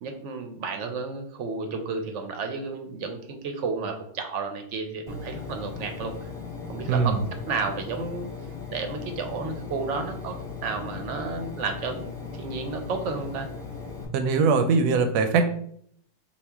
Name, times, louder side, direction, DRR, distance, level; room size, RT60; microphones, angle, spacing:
voice 1, 0.0-6.3 6.7-7.2 7.5-8.3 8.7-10.4 10.6-13.5, right 4 dB, 65° right, 6 dB, 0.8 m, -32 dB
Engine, 5.1-14.0, left 5 dB, 25° left, 0.8 m, -38 dB
voice 2, 6.9-7.2 14.1-15.5, right 4 dB, 85° right, 6 dB, 1.1 m, -21 dB
5.4 x 2.4 x 3.4 m, 0.65 s
omnidirectional pair, 1.7 m